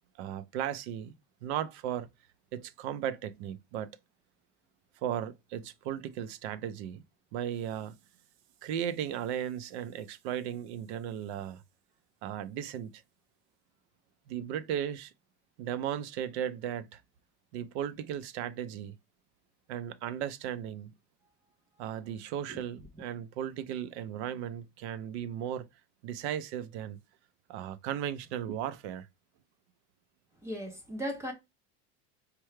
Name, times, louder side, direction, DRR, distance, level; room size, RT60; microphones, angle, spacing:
voice 1, 0.2-1.1 1.4-2.1 2.5-4.0 5.0-7.0 7.3-8.0 8.6-11.6 12.2-13.0 14.3-15.1 15.6-17.0 17.5-19.0 19.7-20.9 21.8-25.7 26.0-27.0 27.5-29.1, right 10 dB, 70° right, 0.5 m, -36 dB
voice 2, 30.4-31.3, equal, 10° right, 0.3 m, -37 dB
4.5 x 2.2 x 3.1 m
supercardioid pair, 160°, 35 cm